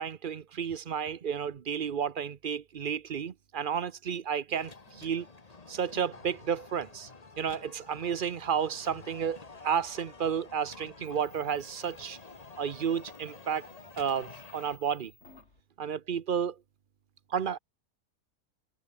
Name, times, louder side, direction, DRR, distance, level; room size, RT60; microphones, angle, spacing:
voice 1, 0.0-5.3 5.7-7.1 7.4-9.4 9.6-12.2 12.6-13.7 14.0-15.1 15.8-16.6 17.3-17.6, right 7 dB, 45° right, 0.8 m, -32 dB
sound 1, 4.5-14.8, left 4 dB, 30° left, 1.4 m, -50 dB
sound 2, 8.7-15.6, left 3 dB, 50° left, 3.2 m, -59 dB
omnidirectional pair, 1.5 m